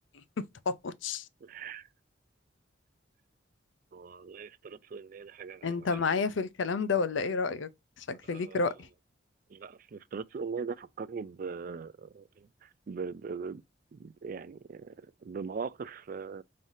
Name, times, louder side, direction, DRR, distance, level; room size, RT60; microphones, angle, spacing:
voice 1, 0.1-1.3 5.6-7.7 8.0-8.9, left 4 dB, 75° left, 0.6 m, -31 dB
voice 2, 1.4-1.9 3.9-5.7 8.3-8.6 9.5-12.5 12.9-13.6 13.9-16.4, right 5 dB, 45° right, 0.3 m, -40 dB
5.5 x 3.2 x 2.6 m
head